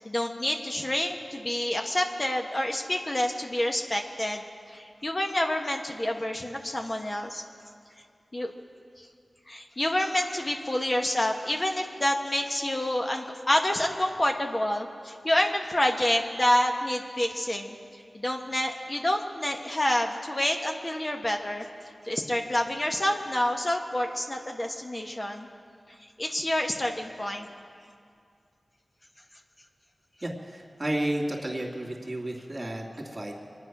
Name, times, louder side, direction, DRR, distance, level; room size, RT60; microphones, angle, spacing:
voice 1, 0.0-7.4 8.3-8.5 9.0-9.1 9.5-17.8 18.1-21.7 22.0-25.5 26.2-27.5, left 1 dB, 35° left, 2 dB, 1.3 m, -28 dB
voice 2, 30.2-33.3, right 1 dB, 35° right, 0 dB, 2.4 m, -32 dB
24.0 x 9.8 x 6.0 m, 2.3 s
wide cardioid pair, 60°, 0 cm